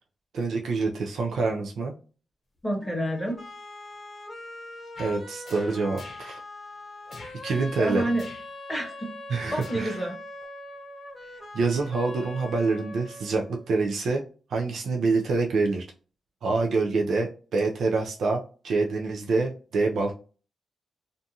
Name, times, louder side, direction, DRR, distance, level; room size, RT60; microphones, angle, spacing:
voice 1, 0.3-1.9 5.0-6.4 7.4-8.0 9.3-10.0 11.5-14.2 14.5-15.8 16.4-20.1, right 3 dB, 75° right, 1 dB, 0.4 m, -26 dB
voice 2, 2.6-3.4 7.8-8.3 8.7-9.1 9.5-10.2, right 1 dB, 10° left, 1 dB, 0.9 m, -28 dB
sound 1, 2.8-13.8, left 1 dB, 35° left, 0.8 m, -42 dB
sound 2, 5.0-5.2 5.4-6.3 7.1-7.4 8.2-8.5 9.6-10.0 10.4-10.5, left 3 dB, 60° left, 0.9 m, -46 dB
2.5 x 2.3 x 2.7 m, 0.37 s
cardioid pair, 95°, 0 cm